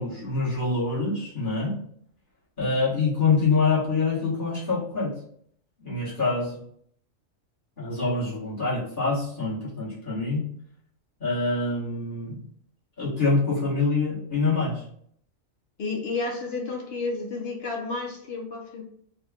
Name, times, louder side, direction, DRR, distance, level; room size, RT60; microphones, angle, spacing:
voice 1, 0.0-1.7 2.6-5.1 5.8-6.6 7.8-10.4 11.2-12.4 13.0-14.8, left 3 dB, 40° left, -9 dB, 1.4 m, -25 dB
voice 2, 15.8-18.8, left 3 dB, 55° left, 0 dB, 0.8 m, -31 dB
3.5 x 2.2 x 3.4 m, 0.64 s
omnidirectional pair, 1.4 m